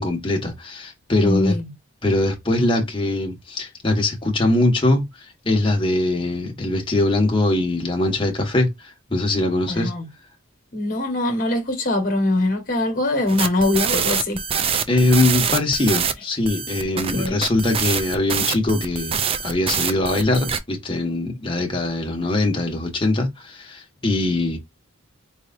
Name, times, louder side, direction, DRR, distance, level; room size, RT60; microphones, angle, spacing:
voice 1, 0.0-1.6 2.0-9.9 14.9-24.6, left 2 dB, 25° left, 1.2 m, -22 dB
voice 2, 1.2-1.7 9.7-10.1 10.7-14.4 16.9-17.4, left 2 dB, 40° left, 1.4 m, -22 dB
sound 1, 13.3-16.1 16.5-20.6, right 7 dB, 25° right, 0.4 m, -24 dB
4.5 x 3.1 x 2.6 m
head